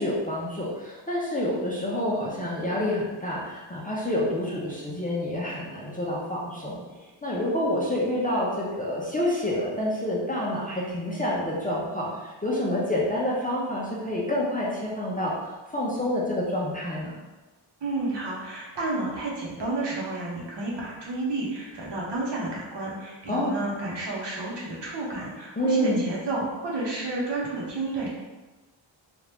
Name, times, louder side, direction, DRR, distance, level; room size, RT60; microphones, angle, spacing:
voice 1, 0.0-6.8 7.2-15.3 15.7-17.1 23.3-23.5 25.6-26.0, left 1 dB, 20° left, -6 dB, 0.5 m, -28 dB
voice 2, 17.8-28.1, right 2 dB, 60° right, -4 dB, 0.9 m, -31 dB
2.9 x 2.4 x 3.3 m, 1.2 s
wide cardioid pair, 120°, 48 cm